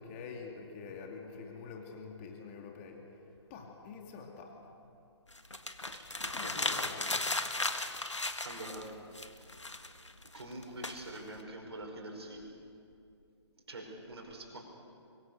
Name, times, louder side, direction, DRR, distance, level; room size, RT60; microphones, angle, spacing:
voice 1, 0.0-3.2 3.5-4.7 6.2-7.2, left 4 dB, 30° left, 2 dB, 2.5 m, -46 dB
sound 1, 5.3-8.9 9.1-11.4, left 2 dB, 85° left, 1.6 m, -36 dB
voice 2, 8.4-9.5 10.3-12.4 13.7-14.6, right 1 dB, 65° right, 0 dB, 5.2 m, -45 dB
24.5 x 22.5 x 6.9 m, 2.5 s
figure-of-eight pair, 135°, 15 cm